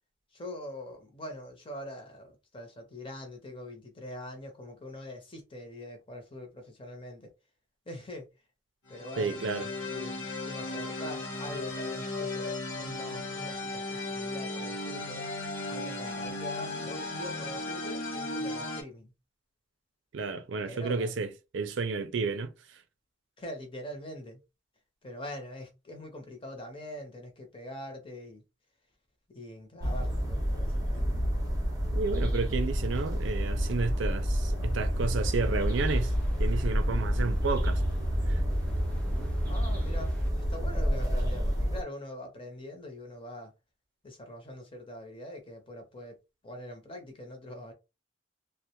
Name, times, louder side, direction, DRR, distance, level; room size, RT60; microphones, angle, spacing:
voice 1, 0.3-7.3 7.9-8.3 8.9-9.4 9.8-15.3 15.7-19.1 20.6-21.2 23.4-24.4 25.0-28.4 29.3-31.2 39.4-43.5 44.0-46.2 46.4-47.7, left 1 dB, 30° left, 0.7 m, -43 dB
sound 1, 8.9-18.8, left 2 dB, 80° left, 0.8 m, -36 dB
voice 2, 9.2-9.7 20.1-21.3 21.5-22.5 31.9-36.1 36.4-37.8 38.3-38.4, right 4 dB, 75° right, 0.4 m, -31 dB
sound 2, 29.8-41.8, equal, 20° right, 0.7 m, -29 dB
sound 3, 34.6-40.3, equal, 5° left, 0.3 m, -38 dB
2.2 x 2.1 x 2.9 m
head